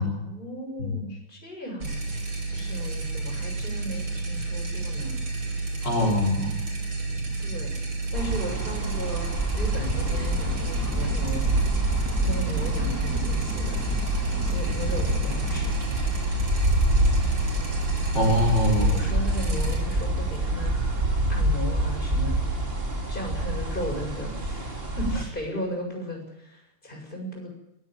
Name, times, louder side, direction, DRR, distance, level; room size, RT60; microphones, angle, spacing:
voice 1, 0.0-2.0 2.5-5.2 7.4-7.8 8.1-9.3 9.5-11.5 12.2-13.8 14.4-15.8 18.7-20.7 21.3-22.4 23.1-27.5, equal, 20° left, 1 dB, 7.2 m, -36 dB
sound 1, 1.8-21.1, right 3 dB, 65° right, 5.7 m, -31 dB
voice 2, 5.8-6.5 18.1-19.2, left 1 dB, 50° left, -3 dB, 5.3 m, -23 dB
sound 2, 8.1-25.2, right 1 dB, 25° right, 3.4 m, -27 dB
sound 3, 10.0-15.7, equal, 10° right, 1.4 m, -31 dB
22.5 x 15.5 x 9.3 m, 0.86 s
omnidirectional pair, 2.4 m